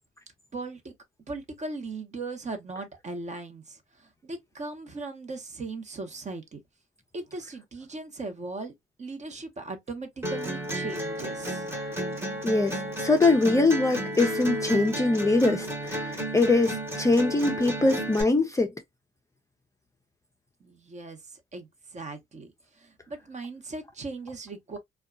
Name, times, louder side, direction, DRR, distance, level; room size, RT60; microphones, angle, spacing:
voice 1, 0.5-0.9 1.3-6.6 7.1-8.7 9.0-11.7 20.6-24.8, right 3 dB, 35° right, 0.8 m, -38 dB
sound 1, 10.2-18.2, right 1 dB, 10° right, 1.0 m, -32 dB
voice 2, 12.4-18.7, left 3 dB, 15° left, 0.4 m, -23 dB
2.8 x 2.2 x 2.3 m
cardioid pair, 90°, 20 cm